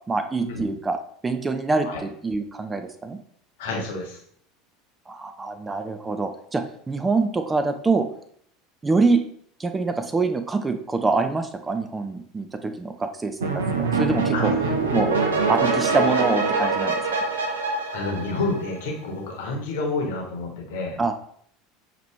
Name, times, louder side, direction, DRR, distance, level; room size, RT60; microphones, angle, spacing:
voice 1, 0.1-3.2 5.1-8.1 8.8-9.2 9.6-13.5 13.8-14.5 14.9-15.2 15.5-17.0 21.0-21.1, right 3 dB, 15° right, 8 dB, 0.4 m, -25 dB
voice 2, 3.6-4.2 14.3-14.8 15.6-15.7 17.9-21.0, left 3 dB, 60° left, 1 dB, 1.1 m, -29 dB
sound 1, 13.4-18.9, right 4 dB, 75° right, 0.6 m, -24 dB
5.8 x 2.8 x 3.2 m, 0.65 s
figure-of-eight pair, 75°, 0 cm